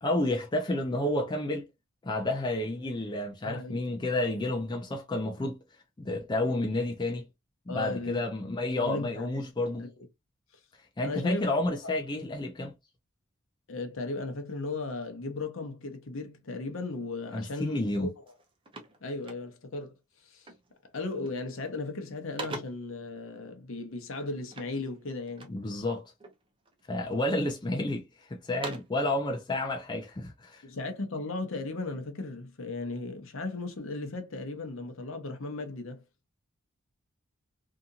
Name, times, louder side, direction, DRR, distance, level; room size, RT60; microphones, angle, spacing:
voice 1, 0.0-1.7 2.0-5.6 6.0-7.3 7.7-9.9 11.0-12.7 17.3-18.1 25.5-26.0 26.9-30.6, left 1 dB, 20° left, 0.4 m, -30 dB
voice 2, 3.4-3.8 7.7-8.2 8.8-9.5 9.8-9.9 11.0-11.5 13.7-18.1 19.0-19.9 20.2-20.5 20.9-25.5 30.6-36.0, left 3 dB, 65° left, 0.8 m, -36 dB
sound 1, 17.8-18.0 18.3-19.8 20.4-20.8 21.1-21.6 21.9-23.0 24.5-25.7 26.2-26.8 27.3-28.0 28.4-29.1, right 2 dB, 25° right, 0.6 m, -44 dB
2.8 x 2.5 x 2.4 m
head